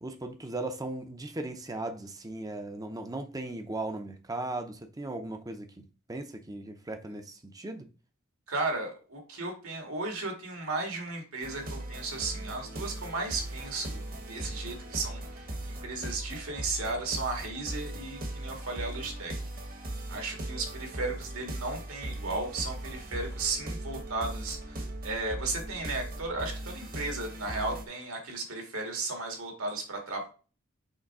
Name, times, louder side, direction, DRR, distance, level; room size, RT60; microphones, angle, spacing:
voice 1, 0.0-7.9, right 2 dB, 15° right, 0.6 m, -37 dB
voice 2, 8.5-19.3 20.1-30.3, right 3 dB, 75° right, 2.0 m, -35 dB
sound 1, 11.4-27.9, right 1 dB, 40° right, 1.1 m, -39 dB
6.5 x 3.4 x 4.7 m
head